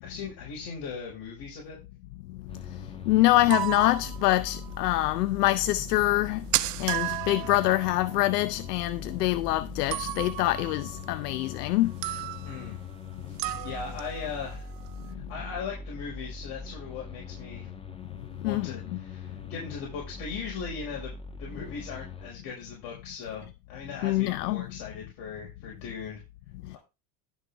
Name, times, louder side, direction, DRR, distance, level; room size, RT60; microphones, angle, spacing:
voice 1, 0.0-1.8 12.4-12.8 13.5-14.7 15.3-17.7 18.4-26.2, left 6 dB, 60° left, 5.3 m, -39 dB
sound 1, 2.5-22.3, left 3 dB, 10° left, 1.2 m, -42 dB
voice 2, 3.1-6.4 6.8-11.9 18.4-19.0 24.0-24.7, left 17 dB, 90° left, 0.7 m, -25 dB
sound 2, 3.3-4.8 5.1-5.2 5.5-5.6 5.7-5.8 6.0-9.4 9.9-11.7 12.0-12.7 13.4-15.1, right 16 dB, 50° right, 0.8 m, -34 dB
12.0 x 6.4 x 3.4 m
supercardioid pair, 110°, 46 cm